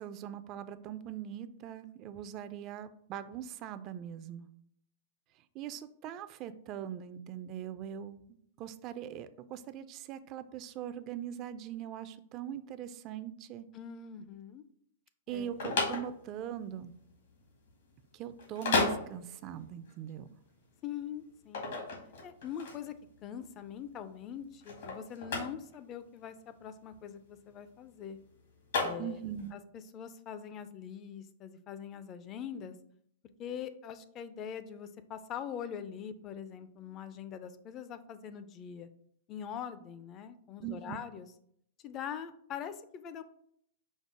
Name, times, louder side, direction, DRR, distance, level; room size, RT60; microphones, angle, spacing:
voice 1, 0.0-4.5 5.5-8.2 8.6-13.7 15.3-16.9 18.1-20.3 29.0-29.5 40.6-41.0, right 10 dB, 40° right, 13 dB, 0.3 m, -41 dB
voice 2, 13.7-14.6 15.3-15.5 20.8-21.8 22.2-22.9 23.2-28.2 28.8-29.2 29.5-32.8 33.4-38.9 39.3-41.3 41.8-43.2, left 8 dB, 35° left, 12 dB, 0.4 m, -43 dB
sound 1, 15.3-29.5, left 3 dB, 70° left, 1.6 m, -35 dB
5.2 x 2.0 x 4.7 m, 0.69 s
hypercardioid pair, 125°, 0 cm